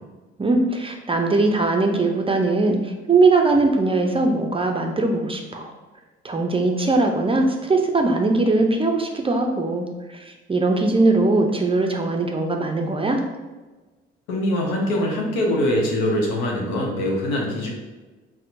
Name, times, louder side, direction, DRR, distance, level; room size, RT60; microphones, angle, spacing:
voice 1, 0.4-5.7 6.2-9.8 10.1-13.2, right 3 dB, 20° right, 2 dB, 0.4 m, -20 dB
voice 2, 14.3-17.7, left 1 dB, 80° left, -1 dB, 0.8 m, -23 dB
4.2 x 2.1 x 2.5 m, 1.2 s
hypercardioid pair, 55°, 29 cm